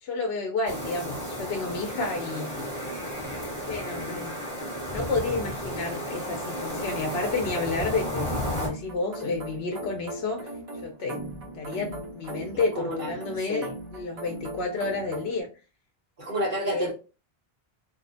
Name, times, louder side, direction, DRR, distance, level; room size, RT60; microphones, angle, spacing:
voice 1, 0.0-2.7 3.2-3.3 3.7-4.4 4.9-10.5 10.8-11.2 11.5-15.5 16.6-16.9, left 3 dB, 80° left, 0.8 m, -30 dB
sound 1, 0.7-8.7, equal, 20° left, 0.9 m, -33 dB
sound 2, 6.7-15.4, right 1 dB, 35° right, 0.8 m, -39 dB
voice 2, 12.8-13.1 13.5-13.7 16.2-16.9, equal, 55° right, 1.1 m, -29 dB
2.6 x 2.1 x 2.5 m
omnidirectional pair, 1.0 m